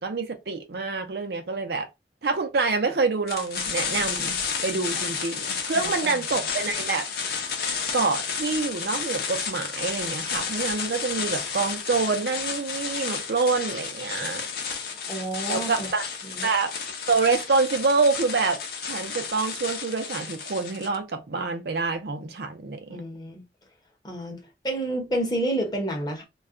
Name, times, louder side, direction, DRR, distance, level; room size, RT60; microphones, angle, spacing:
voice 1, 0.0-1.9 2.2-4.4 4.6-7.1 7.9-14.4 15.5-16.0 16.4-16.7 17.1-23.0, right 4 dB, 65° right, 0.5 m, -26 dB
sound 1, 3.3-21.0, left 6 dB, 60° left, 0.6 m, -31 dB
voice 2, 5.8-6.1 14.9-15.9 16.2-16.5 22.9-23.4 24.0-26.2, right 1 dB, 25° left, 0.8 m, -30 dB
2.3 x 2.1 x 3.6 m
head